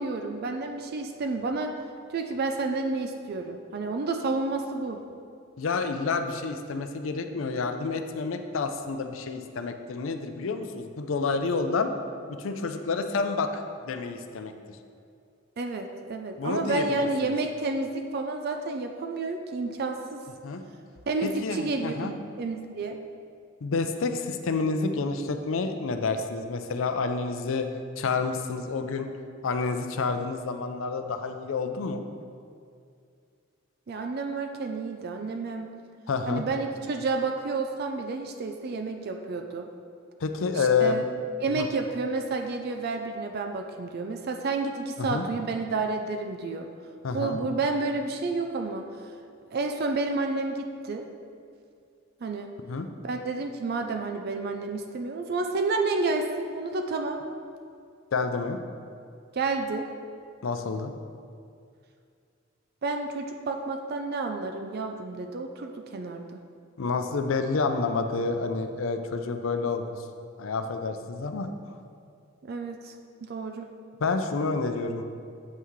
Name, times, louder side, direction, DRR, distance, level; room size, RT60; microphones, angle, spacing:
voice 1, 0.0-1.7 2.1-5.0 15.6-20.2 21.1-23.0 33.9-35.7 36.3-39.7 40.5-41.0 41.4-46.7 47.1-48.9 49.5-51.1 52.2-52.5 53.0-57.2 59.3-59.9 62.8-66.4 72.4-72.9 73.2-73.7, right 3 dB, 50° right, 4 dB, 0.4 m, -30 dB
voice 2, 5.6-11.9 12.3-14.8 16.4-17.3 20.4-20.6 21.2-22.1 23.6-27.7 28.0-29.1 29.4-32.0 36.1-36.4 40.2-41.0 41.5-41.7 45.0-45.3 47.0-47.4 52.7-52.9 58.1-58.6 60.4-60.9 66.8-70.0 70.4-71.5 74.0-75.0, left 4 dB, 80° left, 7 dB, 0.5 m, -29 dB
8.3 x 5.7 x 3.1 m, 2.4 s
head